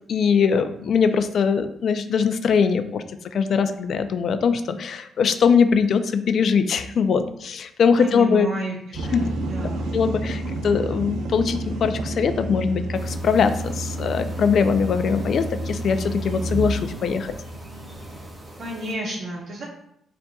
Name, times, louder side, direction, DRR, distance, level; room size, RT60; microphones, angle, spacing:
voice 1, 0.1-8.5 9.1-9.3 9.9-17.4, left 6 dB, 60° left, 10 dB, 0.4 m, -21 dB
voice 2, 8.0-8.7 9.1-9.9 18.5-19.6, right 2 dB, 50° right, -7 dB, 1.2 m, -31 dB
sound 1, 8.9-18.7, right 1 dB, 75° right, 0.6 m, -30 dB
sound 2, 12.9-18.9, right 1 dB, 10° right, 1.3 m, -44 dB
6.8 x 2.5 x 2.3 m, 0.74 s
cardioid pair, 90°, 0 cm